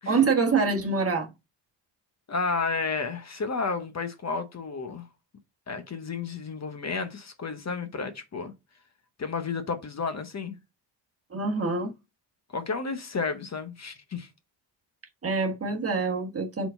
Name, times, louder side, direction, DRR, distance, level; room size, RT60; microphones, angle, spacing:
voice 1, 0.1-1.3 11.3-11.9 15.2-16.7, right 4 dB, 30° right, 1.2 m, -25 dB
voice 2, 2.3-5.1 5.7-8.5 9.2-10.6 12.5-14.3, left 4 dB, 35° left, 0.9 m, -32 dB
4.6 x 4.0 x 5.6 m
wide cardioid pair, 150°, 46 cm